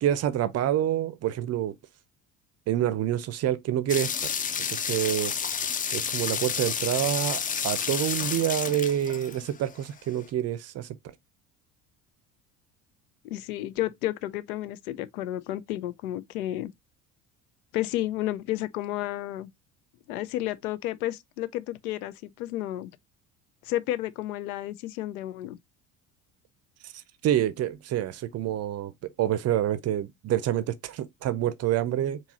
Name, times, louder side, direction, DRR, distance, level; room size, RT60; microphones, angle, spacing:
voice 1, 0.0-1.7 2.7-4.3 4.7-5.3 5.9-10.9 26.8-26.9 27.2-32.2, right 11 dB, 35° right, 0.5 m, -27 dB
sound 1, 3.9-9.7, left 7 dB, 20° left, 0.5 m, -30 dB
voice 2, 13.2-16.7 17.7-19.5 20.1-22.9 23.6-25.6, left 14 dB, 70° left, 0.5 m, -31 dB
4.6 x 2.8 x 2.6 m
figure-of-eight pair, 60°, 45 cm